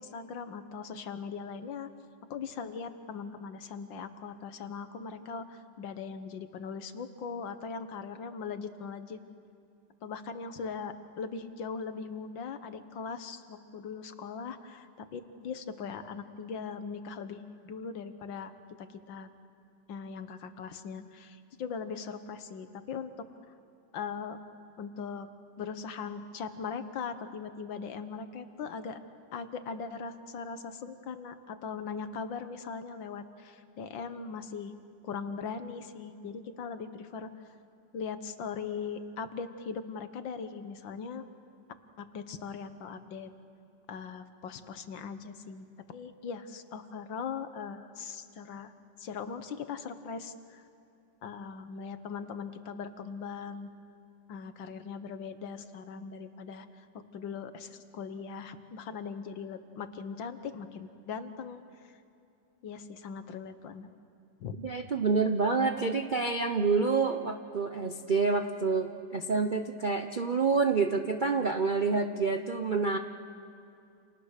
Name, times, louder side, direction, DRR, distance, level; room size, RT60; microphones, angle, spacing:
voice 1, 0.0-1.9 2.3-9.2 10.0-18.5 18.8-19.3 19.9-23.3 23.9-24.4 24.8-25.3 25.6-29.0 29.3-34.7 35.0-37.5 37.9-41.2 42.0-43.3 43.9-48.7 49.0-50.6 51.2-53.7 54.3-62.0 62.6-63.9 64.4-64.6, left 5 dB, 80° left, 10 dB, 1.9 m, -40 dB
voice 2, 64.6-73.0, right 4 dB, 50° right, 5 dB, 0.5 m, -28 dB
29.0 x 28.0 x 6.6 m, 2.5 s
omnidirectional pair, 2.0 m